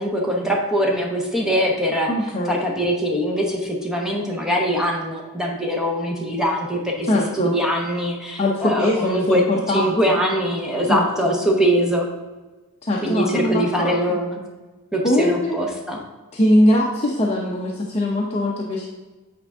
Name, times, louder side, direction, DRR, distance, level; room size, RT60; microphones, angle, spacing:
voice 1, 0.0-2.1 2.5-7.1 7.3-9.4 9.7-12.1 13.0-14.4 14.9-16.0, equal, ahead, 0 dB, 0.8 m, -22 dB
voice 2, 2.1-2.6 7.1-7.6 8.4-10.2 10.9-11.4 12.8-14.2 15.0-15.5 16.3-18.9, left 1 dB, 30° left, -2 dB, 0.7 m, -21 dB
8.6 x 4.5 x 3.6 m, 1.2 s
head